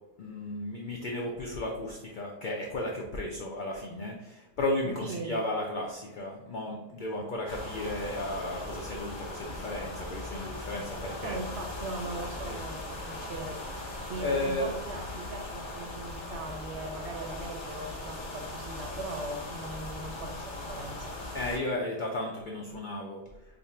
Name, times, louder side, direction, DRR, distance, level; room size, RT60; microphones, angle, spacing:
voice 1, 0.2-11.4 12.5-12.6 14.2-14.7 21.3-23.2, left 1 dB, 80° left, 0 dB, 0.4 m, -34 dB
voice 2, 4.8-5.4 11.2-13.6 14.1-21.1, right 2 dB, 65° right, 3 dB, 0.8 m, -39 dB
sound 1, 7.5-21.6, left 2 dB, 30° left, 0.6 m, -39 dB
2.6 x 2.5 x 4.2 m, 0.97 s
omnidirectional pair, 1.4 m